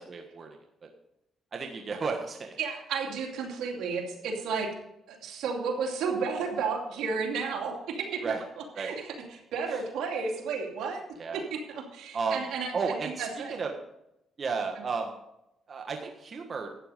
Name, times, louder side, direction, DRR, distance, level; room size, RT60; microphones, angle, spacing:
voice 1, 0.1-0.5 0.8-0.9 1.5-2.6 8.2-8.4 8.7-8.9 11.2-11.4 12.1-12.4 12.7-13.7 14.4-15.1 15.7-16.7, right 5 dB, 45° right, 2 dB, 1.4 m, -33 dB
voice 2, 2.6-4.7 5.1-8.3 8.8-11.0 11.3-12.7 13.0-13.6 14.8-14.9, right 5 dB, 85° right, 1 dB, 2.6 m, -32 dB
12.5 x 9.1 x 5.1 m, 0.85 s
cardioid pair, 90°, 0 cm